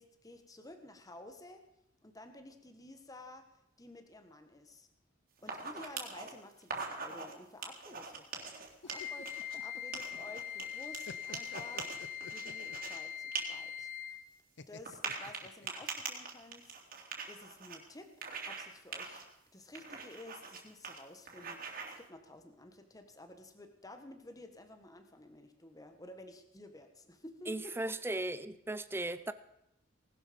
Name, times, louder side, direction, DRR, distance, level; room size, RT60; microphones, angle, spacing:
voice 1, 0.0-1.6 2.0-4.9 5.4-8.5 8.8-13.9 14.7-16.8 17.3-18.1 18.4-19.3 19.5-27.9, left 1 dB, 20° left, 1.5 m, -52 dB
sound 1, 5.4-6.3 6.6-7.3 7.6-9.5 9.9-13.0 13.3-13.4 13.8-13.9 14.9-17.8 18.2-18.7 18.9-19.2 19.8-20.6 20.8-21.0 21.3-22.0, right 5 dB, 45° right, 3.3 m, -42 dB
sound 2, 8.7-10.4 10.7-12.9 14.6-16.0, left 4 dB, 65° left, 0.8 m, -50 dB
Wind instrument woodwind instrument, 8.9-14.3, left 9 dB, 80° right, 2.0 m, -42 dB
voice 2, 27.5-29.3, right 1 dB, 10° right, 0.6 m, -37 dB
19.0 x 12.5 x 5.3 m
head